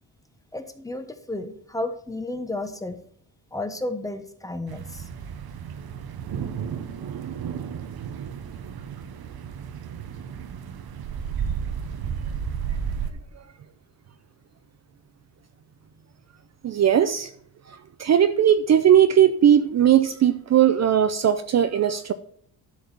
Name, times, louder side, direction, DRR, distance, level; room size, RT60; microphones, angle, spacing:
voice 1, 0.5-3.0 3.5-5.0, left 2 dB, 10° left, 1.1 m, -32 dB
sound 1, 4.7-13.1, right 7 dB, 60° right, 1.1 m, -33 dB
voice 2, 16.6-17.3 18.0-22.1, right 9 dB, 40° right, 0.6 m, -18 dB
11.5 x 4.7 x 6.9 m
cardioid pair, 125°, 41 cm